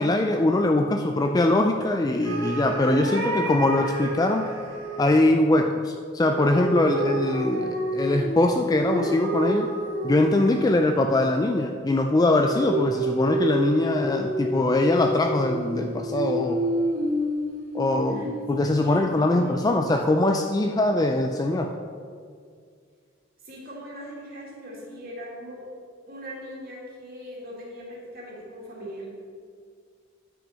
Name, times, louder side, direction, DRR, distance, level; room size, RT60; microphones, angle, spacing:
voice 1, 0.0-4.5 5.0-9.7 10.0-16.7 17.7-21.7, left 2 dB, 20° left, 4 dB, 0.3 m, -22 dB
sound 1, 2.2-5.2 6.2-11.0 12.4-18.5, right 1 dB, 85° right, 1.5 m, -29 dB
voice 2, 6.8-7.2 7.5-7.9 18.1-20.2 23.4-25.6 26.1-29.1, equal, 50° right, -4 dB, 2.4 m, -41 dB
9.3 x 6.3 x 4.3 m, 2.1 s
head